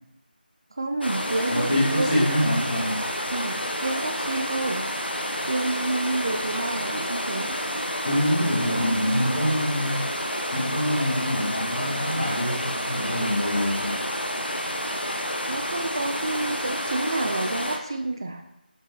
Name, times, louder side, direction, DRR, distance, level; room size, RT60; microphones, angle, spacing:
voice 1, 0.7-2.3 3.3-4.9 5.5-7.6 8.8-9.0 15.5-18.4, right 2 dB, 25° right, 5 dB, 0.4 m, -29 dB
sound 1, 1.0-17.8, equal, 85° left, 1.2 m, -30 dB
voice 2, 1.5-3.0 8.0-10.0 10.5-14.0, equal, 30° left, -13 dB, 2.8 m, -25 dB
6.9 x 6.7 x 4.2 m, 0.84 s
figure-of-eight pair, 165°, 5 cm